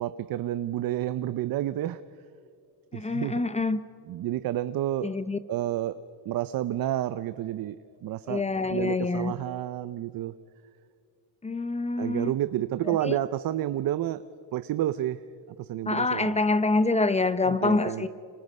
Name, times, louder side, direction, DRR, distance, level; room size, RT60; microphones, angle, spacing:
voice 1, 0.0-2.0 2.9-3.4 4.1-5.2 5.5-6.0 6.3-8.4 8.7-10.3 12.0-14.2 14.5-15.2 15.6-16.4 17.5-18.1, right 13 dB, 45° right, 0.6 m, -30 dB
voice 2, 2.9-3.8 5.0-5.4 8.3-9.3 11.4-12.3 12.9-13.2 15.9-18.1, left 3 dB, 15° left, 0.6 m, -26 dB
30.0 x 26.0 x 5.4 m
cardioid pair, 145°, 49 cm